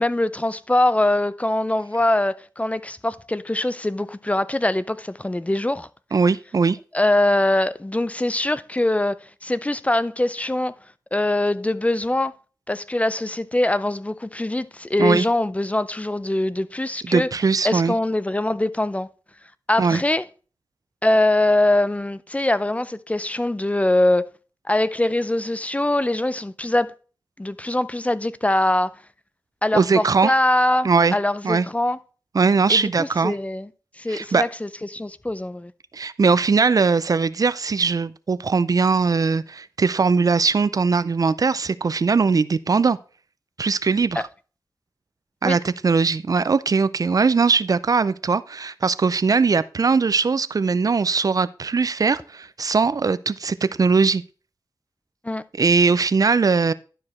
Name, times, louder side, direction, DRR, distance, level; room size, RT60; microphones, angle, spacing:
voice 1, 0.0-5.9 6.9-10.7 11.1-12.3 12.7-17.3 17.6-19.1 19.7-20.2 21.0-24.3 24.7-26.9 27.4-28.9 29.6-32.0 32.7-33.7 34.0-35.7 44.2-44.3 45.4-45.6 55.2-55.4, left 1 dB, 20° left, 0.5 m, -22 dB
voice 2, 6.1-6.8 15.0-15.3 17.0-17.9 19.8-20.0 29.7-30.3 30.8-31.2 31.4-31.7 32.3-33.3 34.1-34.4 35.9-43.0 43.6-44.2 45.4-54.2 55.6-56.7, right 4 dB, 55° right, 0.4 m, -20 dB
11.5 x 4.9 x 4.2 m
cardioid pair, 55°, 7 cm